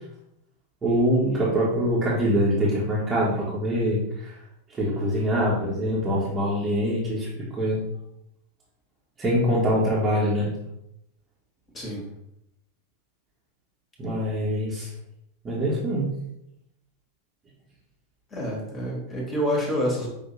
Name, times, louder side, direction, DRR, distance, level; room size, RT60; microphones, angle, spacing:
voice 1, 0.8-4.3 4.8-7.8 9.2-10.5 14.0-14.9 15.4-16.2, equal, 20° right, -7 dB, 1.3 m, -24 dB
voice 2, 18.3-20.1, equal, 20° left, -2 dB, 1.4 m, -27 dB
5.6 x 2.8 x 3.1 m, 0.80 s
figure-of-eight pair, 90°, 0 cm